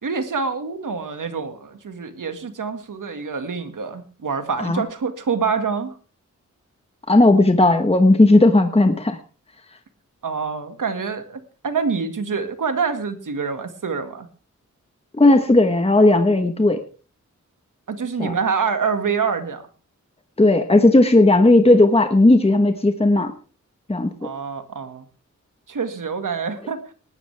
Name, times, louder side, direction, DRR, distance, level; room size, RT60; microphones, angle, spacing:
voice 1, 0.0-6.0 10.2-14.3 17.9-19.7 24.2-25.1 25.7-26.9, right 5 dB, 85° right, 8 dB, 2.0 m, -26 dB
voice 2, 7.1-9.2 15.2-16.8 18.2-18.3 20.4-23.3 23.9-24.1, left 2 dB, 20° left, 7 dB, 1.3 m, -15 dB
19.5 x 12.5 x 3.4 m, 0.37 s
wide cardioid pair, 105°, 31 cm